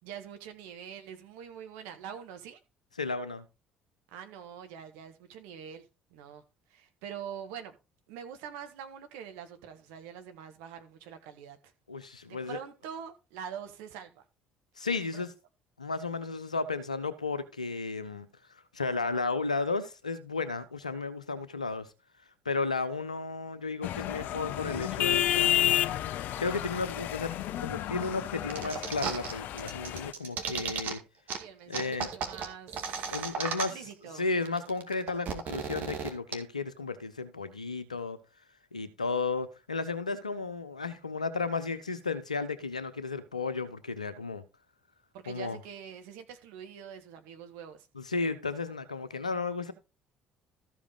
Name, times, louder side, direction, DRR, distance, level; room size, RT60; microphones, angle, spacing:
voice 1, 0.0-2.6 4.1-7.7 8.1-11.7 12.3-14.2 15.1-15.3 31.4-33.1 33.5-34.2 45.1-47.9, right 8 dB, 65° right, 1.5 m, -45 dB
voice 2, 3.0-3.5 11.9-12.6 14.8-15.3 15.8-21.9 22.4-25.8 26.4-27.3 27.6-31.0 31.7-32.1 33.1-33.8 34.1-38.2 38.7-44.4 45.3-45.6 48.0-49.7, left 4 dB, 85° left, 0.9 m, -33 dB
sound 1, 23.8-30.1, left 12 dB, 55° left, 0.5 m, -31 dB
sound 2, 28.5-29.3 29.6-30.9 31.3-31.4 31.7-33.9 34.2-34.3 34.5-36.3, right 6 dB, 50° right, 2.1 m, -34 dB
13.5 x 5.0 x 4.9 m
figure-of-eight pair, 55°, 4 cm